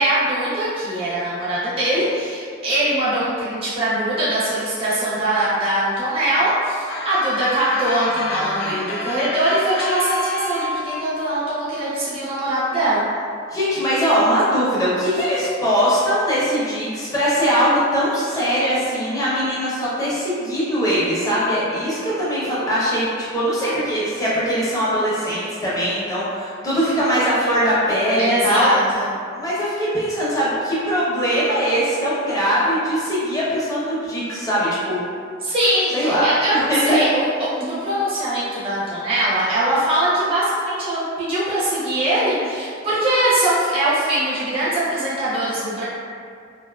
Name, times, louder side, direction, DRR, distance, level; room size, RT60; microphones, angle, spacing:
voice 1, 0.0-13.0 28.2-29.1 35.4-45.8, right 1 dB, 30° right, -9 dB, 0.5 m, -22 dB
sound 1, 6.9-10.8, left 1 dB, 55° left, 0.3 m, -28 dB
voice 2, 8.6-9.0 13.5-23.1 23.3-28.7 29.3-35.0 35.9-36.3 36.5-37.0, equal, 15° left, -9 dB, 0.6 m, -21 dB
2.5 x 2.3 x 2.2 m, 2.2 s
head